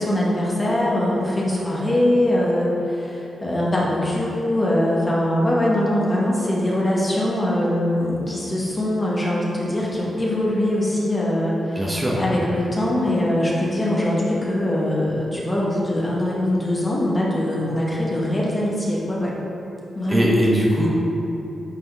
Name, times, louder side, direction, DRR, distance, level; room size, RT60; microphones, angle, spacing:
voice 1, 0.0-11.9 12.2-19.3 19.9-20.3, left 1 dB, 20° left, -5 dB, 1.1 m, -22 dB
voice 2, 11.7-12.2 20.1-20.9, equal, 15° right, -4 dB, 1.0 m, -20 dB
9.2 x 4.2 x 3.5 m, 2.9 s
wide cardioid pair, 140°, 0 cm